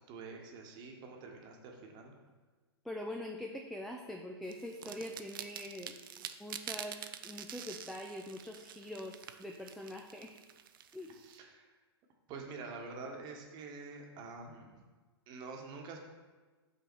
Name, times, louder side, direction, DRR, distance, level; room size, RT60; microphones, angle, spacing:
voice 1, 0.1-2.1 11.1-11.7 12.3-14.8 15.3-16.0, right 4 dB, 30° right, 2 dB, 1.1 m, -47 dB
voice 2, 2.8-10.4 10.9-11.1, left 1 dB, ahead, 2 dB, 0.3 m, -44 dB
sound 1, 4.5-11.3, right 10 dB, 55° right, 0.5 m, -47 dB
5.6 x 4.0 x 6.1 m, 1.3 s
figure-of-eight pair, 105°, 14 cm